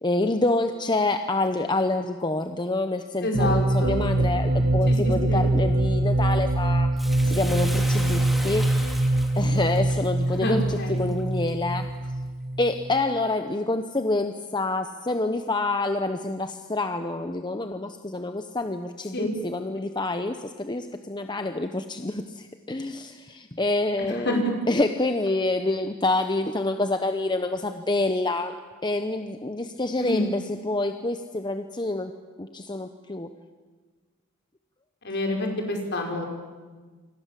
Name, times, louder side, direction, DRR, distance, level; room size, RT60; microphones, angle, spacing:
voice 1, 0.0-8.7 9.3-11.9 12.6-24.4 24.7-28.6 28.8-32.1 32.4-33.3, left 2 dB, 20° left, 7 dB, 0.9 m, -27 dB
voice 2, 3.2-4.0 4.9-5.5 10.3-11.1 19.1-19.3 24.1-24.5 30.0-30.2 35.0-36.2, left 1 dB, 50° left, 2 dB, 5.6 m, -28 dB
sound 1, 3.3-13.0, right 1 dB, 55° right, 1.2 m, -24 dB
Bathtub (filling or washing), 7.0-11.5 12.0-12.1, equal, ahead, 2.7 m, -38 dB
28.0 x 25.5 x 7.6 m, 1.4 s
head